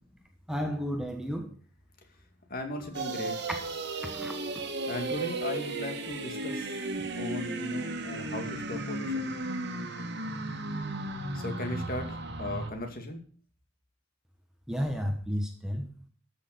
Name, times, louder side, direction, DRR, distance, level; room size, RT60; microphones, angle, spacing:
voice 1, 0.5-1.5 4.0-4.6 14.7-15.9, equal, 5° right, 1.2 m, -32 dB
voice 2, 2.5-3.4 4.9-6.8 7.1-9.3 11.3-13.2, left 1 dB, 45° left, 2.4 m, -37 dB
sound 1, 2.9-12.7, right 2 dB, 55° right, 1.9 m, -35 dB
13.5 x 6.5 x 6.7 m
head